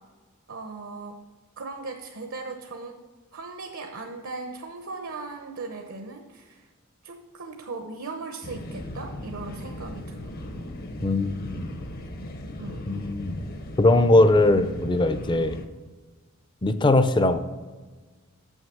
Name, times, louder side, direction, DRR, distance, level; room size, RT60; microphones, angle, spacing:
voice 1, 0.5-1.2 1.6-2.9 3.3-6.7 7.0-10.3 12.6-12.8, right 3 dB, 75° right, 4 dB, 0.8 m, -38 dB
sound 1, 8.4-15.7, left 1 dB, 45° left, 0.8 m, -37 dB
voice 2, 11.0-11.7 12.9-13.4 13.8-15.6 16.6-17.4, left 2 dB, 20° left, 11 dB, 0.5 m, -20 dB
7.1 x 6.4 x 6.2 m, 1.4 s
head